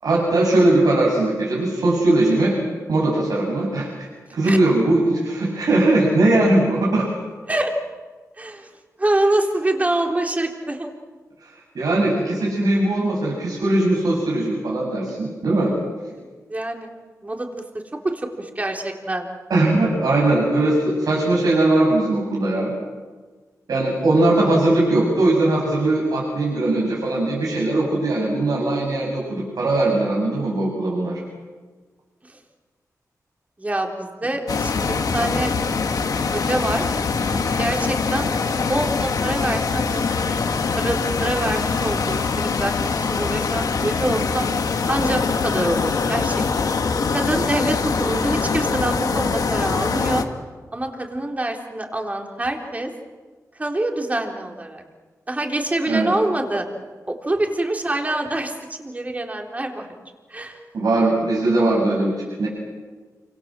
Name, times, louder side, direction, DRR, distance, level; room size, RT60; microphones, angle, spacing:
voice 1, 0.0-2.6 2.9-7.1 11.4-11.5 11.7-15.7 19.5-22.7 23.7-31.2 55.9-56.1 60.7-62.1 62.4-62.5, right 2 dB, 85° right, -3 dB, 7.5 m, -20 dB
voice 2, 8.4-8.7 9.0-10.9 16.2-17.6 18.0-19.3 32.3-32.4 33.6-35.5 36.3-37.0 37.6-38.3 38.7-40.4 40.8-44.5 44.9-46.7 47.1-50.2 50.7-52.9 53.6-54.8 55.3-56.7 57.1-59.9 60.3-60.6, right 1 dB, 25° right, 2 dB, 3.9 m, -25 dB
sound 1, 34.5-50.2, left 4 dB, 80° left, 1.9 m, -23 dB
29.0 x 26.0 x 7.7 m, 1.4 s
wide cardioid pair, 110°, 6 cm